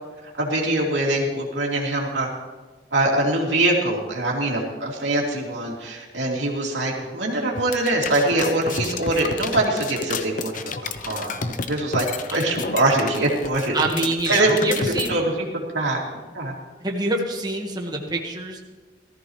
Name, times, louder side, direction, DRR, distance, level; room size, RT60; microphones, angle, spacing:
voice 1, 0.3-2.3 2.9-12.0 12.3-13.8 14.3-16.0 16.3-16.5, right 1 dB, 80° right, -2 dB, 2.9 m, -23 dB
sound 1, 7.6-15.1, left 4 dB, 45° left, 0.7 m, -30 dB
voice 2, 13.7-15.2 16.8-18.6, right 2 dB, 25° right, 1 dB, 1.6 m, -26 dB
18.0 x 14.0 x 3.2 m, 1.3 s
head